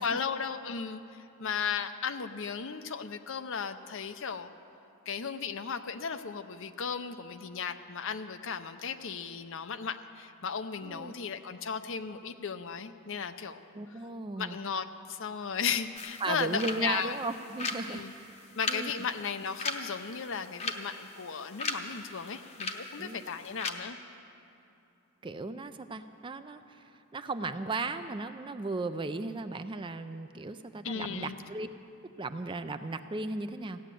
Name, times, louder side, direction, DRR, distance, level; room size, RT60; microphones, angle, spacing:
voice 1, 0.0-4.5 5.1-13.6 13.9-14.0 14.4-17.2 17.9-18.1 18.5-24.0 30.8-31.4, left 6 dB, 60° left, 10 dB, 0.6 m, -35 dB
voice 2, 10.8-11.1 13.7-14.6 16.2-18.4 18.7-18.9 23.0-23.3 25.2-26.8 27.1-31.7 32.2-33.8, right 3 dB, 20° right, 10 dB, 0.4 m, -36 dB
sound 1, 16.0-23.7, left 3 dB, 30° left, 0.9 m, -39 dB
16.0 x 10.5 x 7.6 m, 2.8 s
head